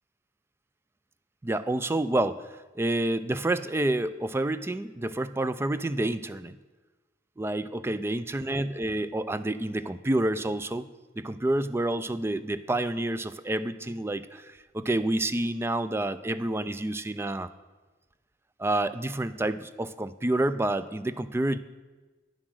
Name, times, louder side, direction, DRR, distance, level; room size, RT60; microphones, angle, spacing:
voice 1, 1.4-2.4 2.8-6.6 7.4-10.9 11.2-17.5 18.6-21.6, right 1 dB, 15° right, 13 dB, 0.3 m, -28 dB
9.7 x 7.5 x 6.3 m, 1.3 s
head